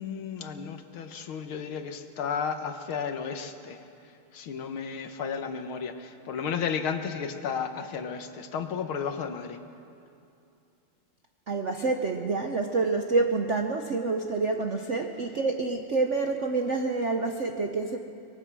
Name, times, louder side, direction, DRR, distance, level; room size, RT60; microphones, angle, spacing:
voice 1, 0.0-3.8 4.3-9.6, left 6 dB, 75° left, 7 dB, 2.0 m, -33 dB
voice 2, 11.5-18.0, right 3 dB, 55° right, 4 dB, 0.8 m, -27 dB
24.0 x 21.5 x 6.2 m, 2.6 s
omnidirectional pair, 2.4 m